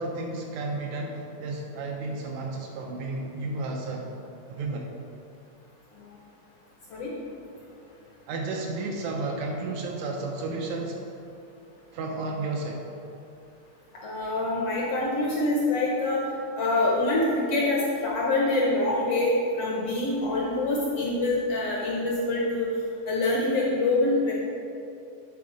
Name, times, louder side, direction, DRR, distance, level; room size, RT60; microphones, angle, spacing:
voice 1, 0.0-4.1 4.5-4.9 8.3-11.0 11.9-12.8, right 2 dB, 80° right, 1 dB, 1.7 m, -32 dB
voice 2, 14.0-16.2 16.6-22.7 23.1-24.3, left 2 dB, 70° left, -4 dB, 1.5 m, -25 dB
9.8 x 3.6 x 4.9 m, 2.7 s
omnidirectional pair, 3.5 m